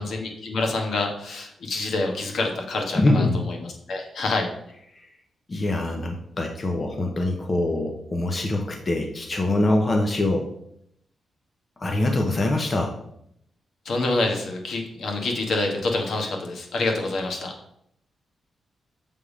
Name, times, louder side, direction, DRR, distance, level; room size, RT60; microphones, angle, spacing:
voice 1, 0.0-4.5 13.8-17.5, left 2 dB, 65° left, 2 dB, 1.3 m, -27 dB
voice 2, 2.9-3.4 4.9-5.1 5.5-10.5 11.8-12.9, left 2 dB, 30° left, 2 dB, 0.7 m, -24 dB
6.9 x 3.5 x 5.0 m, 0.73 s
wide cardioid pair, 135°, 0 cm